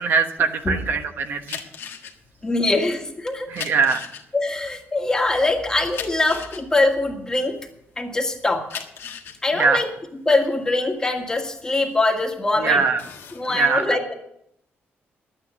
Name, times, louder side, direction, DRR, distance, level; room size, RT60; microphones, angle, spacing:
voice 1, 0.0-1.6 3.5-4.0 9.5-9.8 12.6-13.0 13.5-14.0, right 5 dB, 55° right, 6 dB, 1.2 m, -21 dB
sound 1, 1.4-8.0 8.5-12.3 12.7-13.5, left 7 dB, 65° left, 1.5 m, -37 dB
voice 2, 2.4-3.5 4.3-7.6 8.0-8.7 9.4-9.9 10.3-12.8 13.4-14.1, left 2 dB, 15° left, 3 dB, 1.7 m, -22 dB
11.5 x 9.4 x 8.0 m, 0.76 s
cardioid pair, 155°, 4 cm